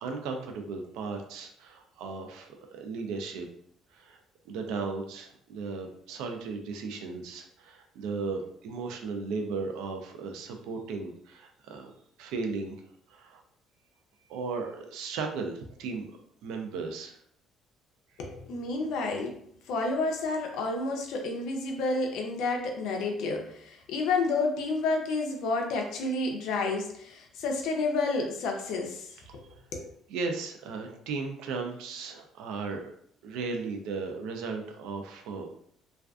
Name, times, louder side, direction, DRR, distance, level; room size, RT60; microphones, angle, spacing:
voice 1, 0.0-3.5 3.9-4.2 4.5-11.9 12.2-12.8 13.1-13.4 14.3-16.1 16.4-17.2 29.3-29.6 30.1-32.9 33.2-35.5, right 4 dB, 90° right, 4 dB, 0.4 m, -36 dB
voice 2, 18.2-19.3 19.7-29.1 29.7-29.9, left 3 dB, 75° left, 2 dB, 0.5 m, -30 dB
2.4 x 2.3 x 2.3 m, 0.66 s
cardioid pair, 140°, 0 cm